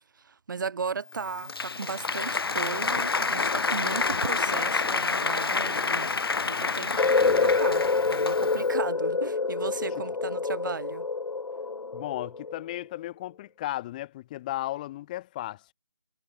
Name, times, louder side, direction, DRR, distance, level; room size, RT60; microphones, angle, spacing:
voice 1, 0.2-6.1 6.5-7.8 8.1-11.1, right 5 dB, 35° right, 3.7 m, -36 dB
Applause, 1.1-8.7, left 4 dB, 45° left, 0.6 m, -28 dB
sound 1, 7.0-12.8, left 4 dB, 75° left, 0.8 m, -26 dB
voice 2, 7.2-7.5 10.0-10.1 11.9-15.7, left 15 dB, 15° left, 2.8 m, -35 dB
figure-of-eight pair, 165°, 17 cm